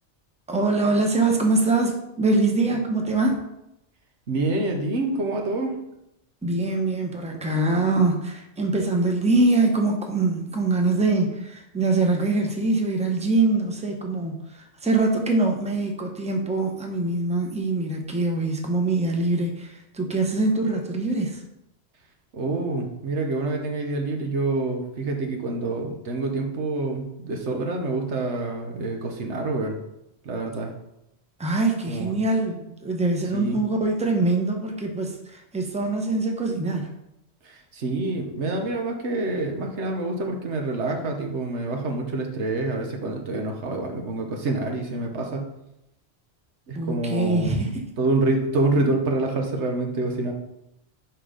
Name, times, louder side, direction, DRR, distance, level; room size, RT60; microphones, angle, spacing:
voice 1, 0.5-3.4 6.4-21.4 31.4-36.9 46.8-47.8, right 2 dB, 5° right, 2 dB, 0.8 m, -23 dB
voice 2, 4.3-5.7 22.3-29.8 30.2-30.7 31.9-32.2 33.3-33.6 37.7-45.5 46.7-47.7 48.0-50.3, right 2 dB, 85° right, 2 dB, 1.4 m, -27 dB
5.9 x 4.6 x 5.0 m, 0.85 s
omnidirectional pair, 1.1 m